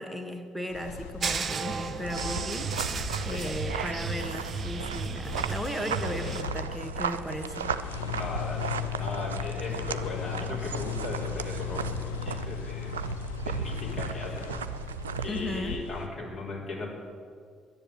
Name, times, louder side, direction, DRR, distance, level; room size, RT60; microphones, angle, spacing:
voice 1, 0.0-2.7 3.2-7.7 15.3-15.8, left 1 dB, ahead, 5 dB, 1.8 m, -36 dB
sound 1, 0.7-16.1, left 7 dB, 80° left, 0.8 m, -38 dB
sound 2, 1.2-6.4, right 5 dB, 45° right, 0.7 m, -34 dB
sound 3, 2.0-15.6, right 6 dB, 85° right, 0.3 m, -36 dB
voice 2, 8.1-13.0 13.4-14.5 15.2-16.9, left 2 dB, 50° left, -3 dB, 4.7 m, -37 dB
10.5 x 10.0 x 9.9 m, 2.1 s
figure-of-eight pair, 45°, 0 cm